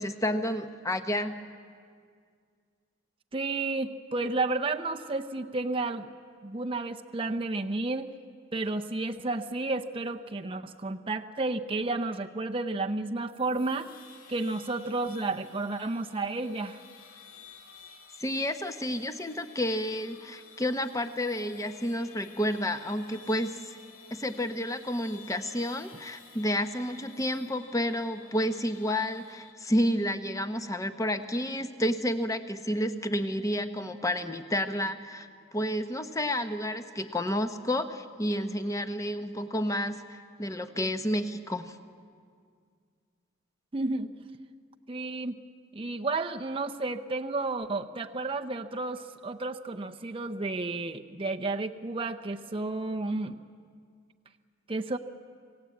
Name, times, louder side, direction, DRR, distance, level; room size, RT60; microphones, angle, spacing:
voice 1, 0.0-1.4 18.2-23.8 24.1-35.3 35.5-41.8, equal, 15° left, 9 dB, 0.9 m, -30 dB
voice 2, 3.3-6.1 6.4-8.1 8.5-13.9 14.3-16.8 43.7-44.1 44.9-45.4 45.7-53.4 54.7-55.0, right 3 dB, 25° right, 5 dB, 0.6 m, -32 dB
sound 1, 13.3-29.5, left 6 dB, 80° left, 2.1 m, -53 dB
27.0 x 17.0 x 8.4 m, 2.1 s
head